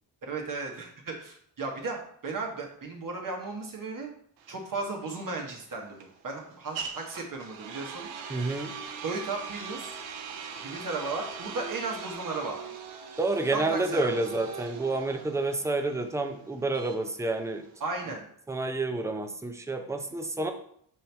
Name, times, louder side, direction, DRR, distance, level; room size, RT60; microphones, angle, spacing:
voice 1, 0.3-4.1 4.5-8.4 9.0-10.0 10.6-12.6 13.5-14.2 17.8-18.2, right 3 dB, 45° right, 1 dB, 1.1 m, -35 dB
sound 1, 4.4-18.2, right 6 dB, 90° right, 0.8 m, -41 dB
voice 2, 8.3-8.7 13.2-17.6 18.5-20.5, right 2 dB, 5° right, 6 dB, 0.5 m, -29 dB
5.5 x 2.8 x 3.3 m, 0.65 s
supercardioid pair, 65°, 47 cm